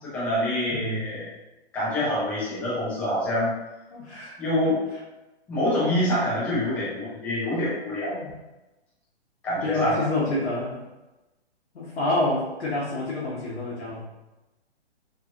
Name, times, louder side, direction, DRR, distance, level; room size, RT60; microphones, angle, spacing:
voice 1, 0.0-1.3 1.7-3.5 4.4-4.8 5.5-8.2 9.4-10.0, left 1 dB, 5° left, -10 dB, 0.5 m, -26 dB
voice 2, 0.7-1.1 3.9-4.4 4.6-4.8 7.4-7.7 8.1-8.3 9.6-10.8 11.7-14.0, left 2 dB, 75° left, -7 dB, 1.0 m, -28 dB
3.1 x 2.4 x 2.8 m, 1.0 s
hypercardioid pair, 145°, 33 cm